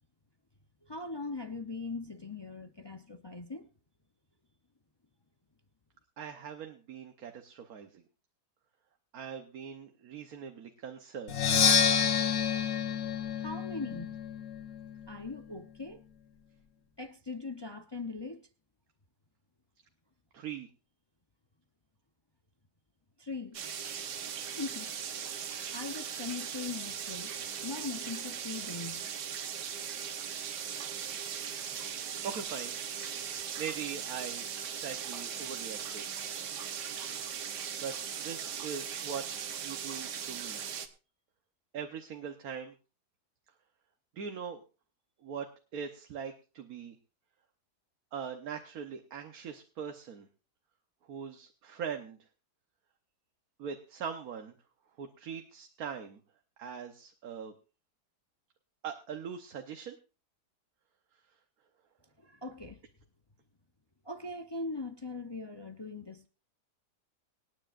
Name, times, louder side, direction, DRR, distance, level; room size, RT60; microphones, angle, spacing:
voice 1, 0.8-3.7 13.4-14.2 15.1-16.0 17.0-18.4 23.2-23.6 24.6-24.9 25.7-27.3 27.6-29.1 62.2-62.8 64.0-66.3, left 3 dB, 30° left, 0.4 m, -40 dB
voice 2, 6.2-8.0 9.1-11.4 20.3-20.7 32.2-32.7 33.6-36.0 37.8-40.6 41.7-42.7 44.1-44.6 45.2-47.0 48.1-50.3 51.1-52.2 53.6-54.5 55.0-56.2 56.6-57.5 58.8-60.0, right 7 dB, 65° right, 1.4 m, -41 dB
Percussion, 11.3-15.1, left 7 dB, 50° left, 1.0 m, -28 dB
sound 1, 23.5-40.9, right 8 dB, 85° right, 1.6 m, -39 dB
25.5 x 9.8 x 2.5 m
omnidirectional pair, 1.8 m